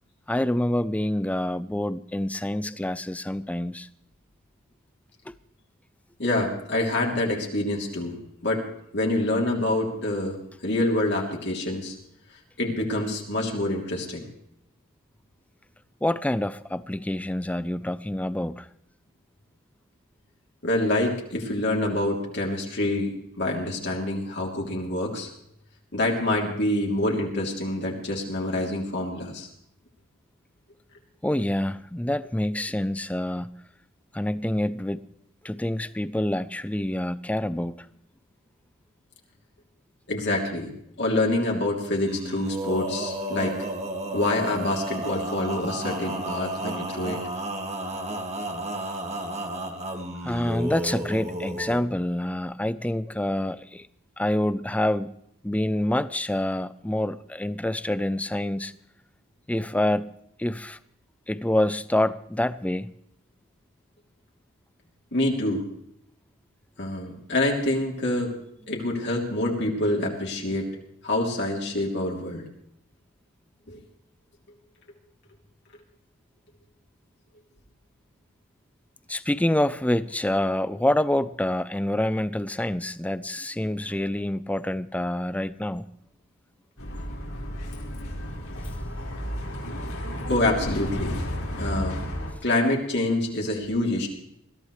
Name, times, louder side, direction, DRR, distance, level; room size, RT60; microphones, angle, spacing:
voice 1, 0.3-3.9 5.3-5.4 16.0-18.7 31.2-33.5 34.1-35.0 35.4-37.8 50.2-53.9 54.2-55.1 55.4-58.7 59.5-60.1 60.4-60.8 61.3-62.9 79.1-85.9, left 1 dB, 5° left, 0.5 m, -27 dB
voice 2, 6.2-8.7 8.9-10.4 10.6-11.9 12.6-14.3 20.6-25.3 25.9-29.5 40.1-40.7 41.0-43.6 44.1-47.2 65.1-65.6 66.8-68.3 68.7-70.7 71.0-72.4 73.7-73.8 90.3-91.1 91.6-92.0 92.4-94.1, left 1 dB, 55° left, 3.1 m, -26 dB
Male singing, 42.0-51.8, right 1 dB, 30° right, 2.0 m, -32 dB
Bus, 86.8-92.3, equal, 80° left, 4.8 m, -32 dB
21.5 x 15.0 x 3.2 m
head